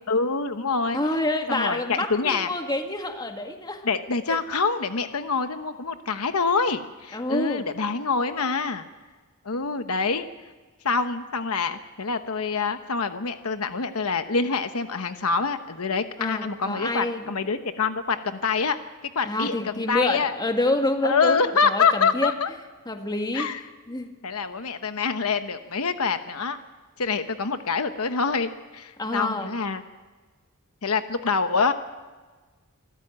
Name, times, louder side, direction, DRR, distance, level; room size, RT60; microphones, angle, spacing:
voice 1, 0.1-1.0 1.5-2.5 3.8-8.9 9.4-10.3 10.8-18.8 19.1-20.4 21.0-22.5 23.3-23.6 24.2-26.6 27.0-29.8 30.8-31.7, left 4 dB, 75° left, 9 dB, 1.1 m, -26 dB
voice 2, 0.9-3.9 4.3-4.4 7.1-7.6 16.2-17.3 19.2-22.3 22.9-23.5 23.9-24.1 29.0-29.5, left 1 dB, 20° left, 4 dB, 1.9 m, -27 dB
27.0 x 13.5 x 8.9 m, 1.4 s
head